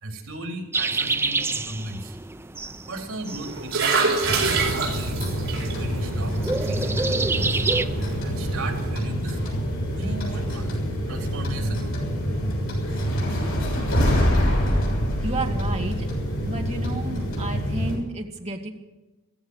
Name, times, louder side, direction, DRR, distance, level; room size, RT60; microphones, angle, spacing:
voice 1, 0.0-2.2 2.6-5.3 5.7-6.4 6.6-7.7 7.9-10.8 11.1-12.0, right 1 dB, 85° right, 3 dB, 3.8 m, -36 dB
sound 1, 0.7-7.9, right 3 dB, 10° right, 0.4 m, -29 dB
sound 2, 3.3-8.9, right 4 dB, 65° right, 4.8 m, -28 dB
sound 3, 4.2-18.0, equal, 65° left, 6.8 m, -26 dB
voice 2, 15.2-16.1 16.5-18.7, right 2 dB, 30° right, 2 dB, 1.8 m, -31 dB
15.5 x 14.5 x 6.3 m, 1.1 s
head